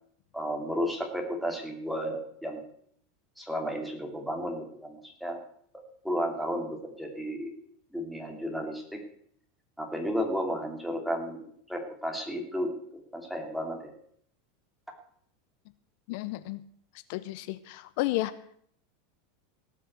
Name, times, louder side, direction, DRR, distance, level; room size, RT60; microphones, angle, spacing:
voice 1, 0.3-2.6 3.4-5.4 6.0-7.5 7.9-9.0 9.8-11.4 11.7-12.7 13.1-13.9, equal, ahead, 1 dB, 2.7 m, -33 dB
voice 2, 16.1-16.7 17.1-18.3, left 18 dB, 60° left, 13 dB, 0.6 m, -32 dB
17.5 x 6.5 x 8.0 m, 0.66 s
supercardioid pair, 130°, 0 cm